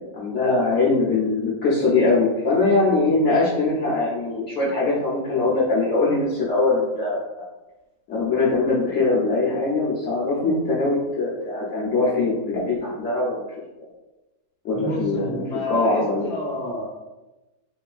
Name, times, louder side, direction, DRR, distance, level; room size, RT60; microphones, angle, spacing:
voice 1, 0.0-7.5 8.1-13.5 13.8-13.9 14.6-16.3, left 3 dB, 90° left, -7 dB, 0.6 m, -22 dB
voice 2, 14.7-16.9, left 1 dB, 35° left, -5 dB, 0.5 m, -29 dB
3.1 x 2.9 x 2.3 m, 1.0 s
omnidirectional pair, 2.0 m